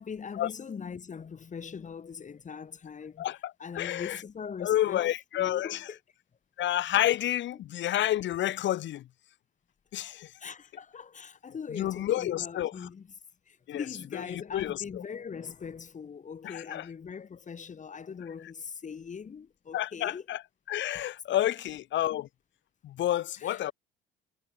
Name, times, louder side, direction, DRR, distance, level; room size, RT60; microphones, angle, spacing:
voice 1, 0.0-3.3 3.6-6.0 10.4-13.1 13.5-20.3 21.4-21.6 23.4-23.6, left 6 dB, 35° left, 6.4 m, -41 dB
voice 2, 3.7-4.2 4.6-5.8 6.6-9.1 9.9-10.3 11.7-12.7 13.7-13.8 14.3-15.0 16.4-16.8 19.7-20.4 20.7-22.3 22.8-23.7, left 13 dB, 60° left, 2.7 m, -29 dB
supercardioid pair, 85°, 21 cm